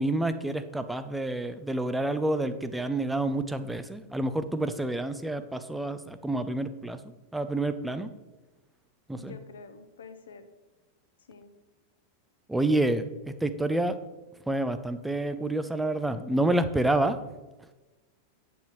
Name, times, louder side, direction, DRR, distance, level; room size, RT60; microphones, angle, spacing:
voice 1, 0.0-7.0 7.3-8.1 9.1-9.4 12.5-13.1 13.4-13.9 14.5-17.2, right 2 dB, 5° right, 10 dB, 0.5 m, -28 dB
voice 2, 9.2-10.5 11.3-11.6, left 5 dB, 65° left, 9 dB, 0.8 m, -47 dB
8.5 x 8.0 x 3.1 m, 1.1 s
figure-of-eight pair, 90°, 0 cm